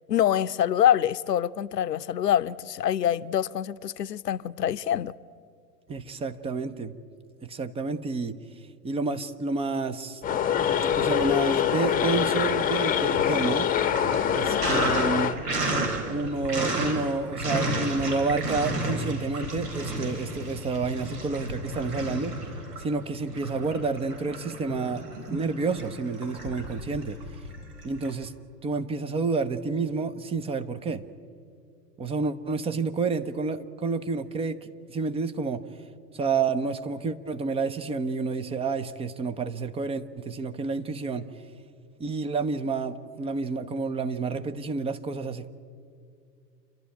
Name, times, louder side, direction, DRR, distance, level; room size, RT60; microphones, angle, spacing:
voice 1, 0.1-5.1, left 10 dB, 75° left, 0.7 m, -25 dB
voice 2, 5.9-6.9 7.4-8.4 8.8-10.2 10.9-13.7 14.3-15.4 16.1-22.4 22.8-27.2 27.8-28.3 28.6-31.0 32.0-35.6 36.1-41.3 42.0-45.5, right 4 dB, 10° right, 0.7 m, -29 dB
sound 1, 10.2-15.3, left 9 dB, 15° left, 1.0 m, -24 dB
Sink (filling or washing), 10.8-11.7 12.0-28.1, right 1 dB, 65° right, 4.2 m, -32 dB
28.0 x 12.0 x 9.8 m
figure-of-eight pair, 100°, 49 cm